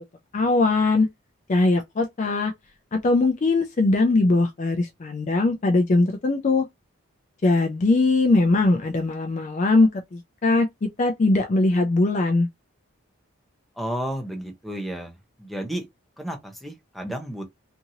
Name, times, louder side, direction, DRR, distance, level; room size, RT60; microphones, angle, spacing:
voice 1, 0.3-1.1 1.5-2.5 2.9-6.7 7.4-12.5, left 2 dB, 35° left, 0.4 m, -21 dB
voice 2, 13.8-15.1 15.4-15.8 16.2-17.4, right 1 dB, ahead, 0.7 m, -32 dB
2.8 x 2.6 x 2.7 m
head